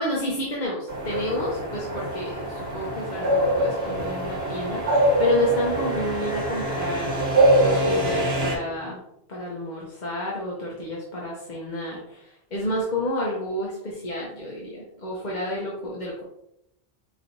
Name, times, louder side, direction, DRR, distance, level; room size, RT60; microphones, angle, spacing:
voice 1, 0.0-7.2 7.6-9.0 9.3-16.2, left 1 dB, 50° left, -4 dB, 0.8 m, -30 dB
sound 1, 0.9-8.6, right 1 dB, 70° right, 1.3 m, -24 dB
5.0 x 2.9 x 2.6 m, 0.79 s
omnidirectional pair, 1.1 m